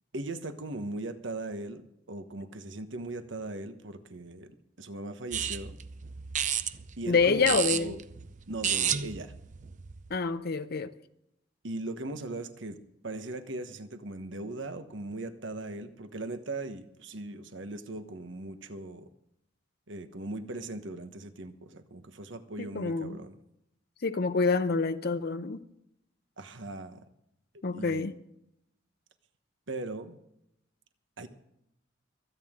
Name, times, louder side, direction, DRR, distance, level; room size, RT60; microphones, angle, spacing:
voice 1, 0.1-4.5 4.8-5.8 7.0-7.4 7.7-8.0 8.5-9.3 11.6-12.8 13.0-19.1 19.9-23.4 26.4-27.0 27.7-28.1 29.7-30.2 31.2-31.3, right 2 dB, 80° right, 1.2 m, -39 dB
sound 1, 5.3-10.2, right 9 dB, 40° right, 0.6 m, -33 dB
voice 2, 7.1-7.9 10.1-10.9 22.7-23.2 24.0-25.6 27.6-28.1, left 4 dB, 55° left, 0.7 m, -27 dB
25.5 x 9.1 x 3.7 m
head